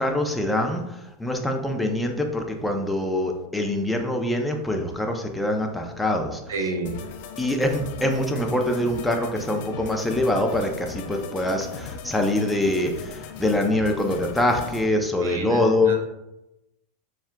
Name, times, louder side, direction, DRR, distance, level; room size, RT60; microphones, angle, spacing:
voice 1, 0.0-6.4 7.4-16.1, left 1 dB, 5° left, 3 dB, 0.5 m, -24 dB
voice 2, 6.5-7.0 15.2-16.0, right 3 dB, 85° right, 4 dB, 0.6 m, -30 dB
sound 1, 6.8-14.9, left 5 dB, 65° left, 0.5 m, -38 dB
7.0 x 2.4 x 2.2 m, 0.93 s
hypercardioid pair, 110°, 0 cm